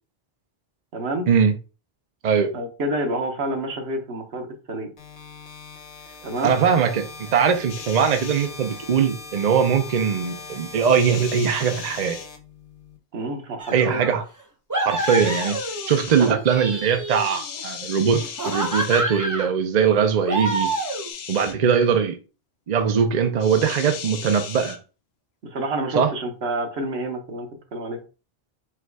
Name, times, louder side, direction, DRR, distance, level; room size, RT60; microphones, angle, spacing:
voice 1, 0.9-1.3 2.5-4.9 6.2-6.5 13.1-14.0 25.4-28.0, right 1 dB, 80° right, 1.3 m, -28 dB
sound 1, 5.0-13.0, left 4 dB, 55° left, 1.0 m, -40 dB
voice 2, 6.4-7.1 7.3-12.2 13.7-14.2 14.8-15.6 15.9-20.7 21.3-22.2 22.7-24.8 26.0-26.1, right 7 dB, 50° right, 0.6 m, -21 dB
sound 2, 7.7-8.5 10.8-12.3 15.0-16.3 17.1-19.0 20.4-21.6 23.4-24.8, left 8 dB, 80° left, 0.9 m, -36 dB
sound 3, 13.6-14.1 14.7-15.9 16.3-17.6 18.2-19.5 20.2-21.1, right 1 dB, 20° right, 0.8 m, -28 dB
4.6 x 2.3 x 4.6 m
omnidirectional pair, 1.1 m